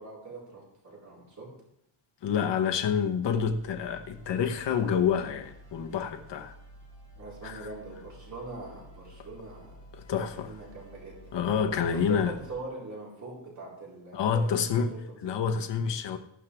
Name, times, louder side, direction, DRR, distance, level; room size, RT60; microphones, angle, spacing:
voice 1, 0.0-1.5 7.2-9.8 10.2-11.3 11.9-14.7 15.1-15.6, right 3 dB, 35° right, 4.4 m, -42 dB
voice 2, 2.2-6.5 7.4-7.7 9.9-10.5 11.3-12.3 14.1-14.9 15.2-16.2, left 7 dB, 60° left, 1.1 m, -28 dB
sound 1, 3.3-12.6, right 1 dB, 20° left, 5.8 m, -51 dB
14.0 x 12.5 x 3.5 m
wide cardioid pair, 165°, 48 cm